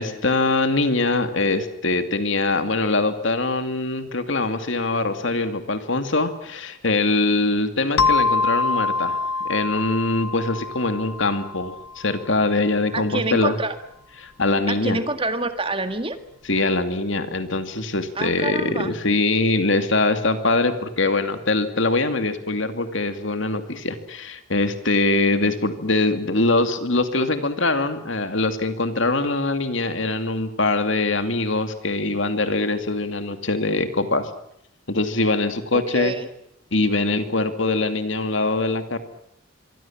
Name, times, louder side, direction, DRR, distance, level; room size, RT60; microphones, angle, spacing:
voice 1, 0.0-9.2 9.4-13.5 14.2-15.0 16.5-34.3 34.9-36.1 36.7-39.0, left 2 dB, 60° left, 8 dB, 2.5 m, -23 dB
sound 1, 8.0-12.4, left 4 dB, 90° left, 1.2 m, -25 dB
voice 2, 12.9-13.8 14.7-16.2 18.2-18.9 25.4-25.6 35.7-36.3, right 2 dB, 25° right, 9 dB, 1.9 m, -27 dB
26.0 x 24.0 x 7.4 m, 0.74 s
head